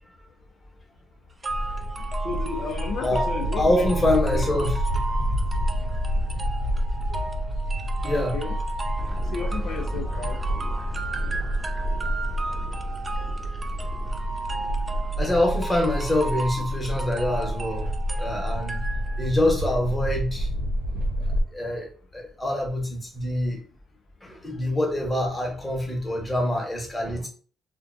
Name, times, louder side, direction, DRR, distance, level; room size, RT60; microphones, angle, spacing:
sound 1, 1.4-19.4, right 3 dB, 25° right, 0.3 m, -35 dB
sound 2, 1.5-21.4, equal, 80° right, 0.7 m, -29 dB
voice 1, 2.2-4.5 8.1-8.6 9.3-10.4, left 5 dB, 65° left, 0.4 m, -33 dB
voice 2, 3.0-4.8 7.1-7.2 8.0-8.4 15.2-18.8 19.2-20.5 21.5-23.6 24.2-27.3, left 1 dB, 15° left, 1.0 m, -25 dB
sound 3, 9.0-15.8, equal, 5° right, 0.8 m, -36 dB
2.5 x 2.1 x 2.5 m
cardioid pair, 90°, 0 cm